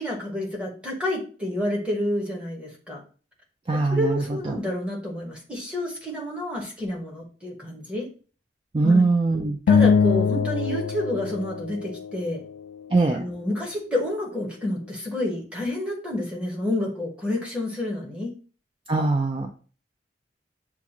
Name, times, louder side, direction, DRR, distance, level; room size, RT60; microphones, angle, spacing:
voice 1, 0.0-3.0 3.9-8.1 8.8-9.1 9.7-12.4 13.1-18.3, left 1 dB, 5° right, -2 dB, 1.2 m, -29 dB
voice 2, 3.7-4.6 8.7-9.6 12.9-13.2 18.9-19.5, right 3 dB, 30° right, 3 dB, 0.4 m, -22 dB
sound 1, 9.7-12.3, left 6 dB, 80° left, 0.3 m, -22 dB
7.1 x 2.4 x 2.9 m, 0.39 s
head